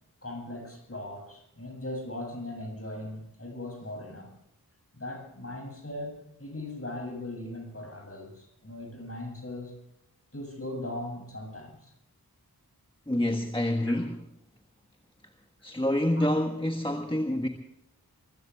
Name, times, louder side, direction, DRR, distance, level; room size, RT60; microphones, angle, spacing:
voice 1, 0.2-4.3 4.9-9.7 10.3-11.9 13.9-14.1 16.2-16.3, left 1 dB, 40° left, 2 dB, 7.4 m, -39 dB
voice 2, 13.1-14.2 15.6-17.5, left 1 dB, 15° left, 3 dB, 1.5 m, -27 dB
23.5 x 16.0 x 3.6 m, 0.78 s
wide cardioid pair, 45°, 37 cm